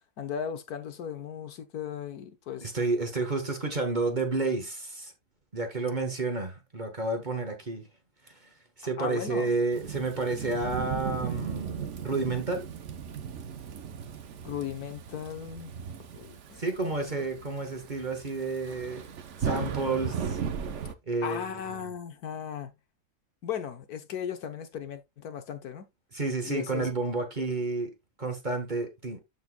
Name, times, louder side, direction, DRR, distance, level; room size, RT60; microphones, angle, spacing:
voice 1, 0.2-2.7 9.0-9.5 14.4-15.7 16.1-17.1 21.2-22.7 23.4-25.9 26.4-26.9, left 8 dB, 70° left, 1.5 m, -37 dB
voice 2, 2.6-5.1 5.5-7.8 8.3-8.5 8.8-12.7 16.6-19.1 19.4-20.4 21.1-21.9 26.1-27.9 28.2-29.2, right 3 dB, 30° right, 1.4 m, -30 dB
Thunderstorm / Rain, 9.7-20.9, right 7 dB, 55° right, 1.0 m, -37 dB
13.0 x 4.5 x 2.2 m
omnidirectional pair, 1.7 m